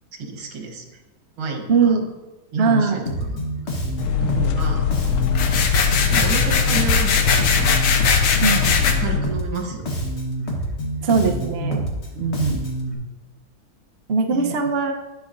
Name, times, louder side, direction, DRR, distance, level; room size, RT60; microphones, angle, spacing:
voice 1, 0.2-1.0 1.4-2.0 2.5-3.4 4.2-4.9 6.1-7.7 9.0-9.9 12.1-12.7 14.3-14.6, right 4 dB, 80° right, 2 dB, 2.0 m, -29 dB
voice 2, 1.7-2.0 2.6-3.0 8.4-8.8 11.0-11.8 14.1-14.9, right 4 dB, 55° right, 3 dB, 0.7 m, -20 dB
Bass guitar, 3.1-12.9, right 1 dB, 40° left, 1.3 m, -27 dB
sound 1, 4.0-9.2, left 8 dB, 85° left, 1.4 m, -22 dB
sound 2, 5.3-8.9, left 5 dB, 70° left, 1.5 m, -21 dB
10.5 x 8.4 x 2.6 m, 1.1 s
omnidirectional pair, 2.2 m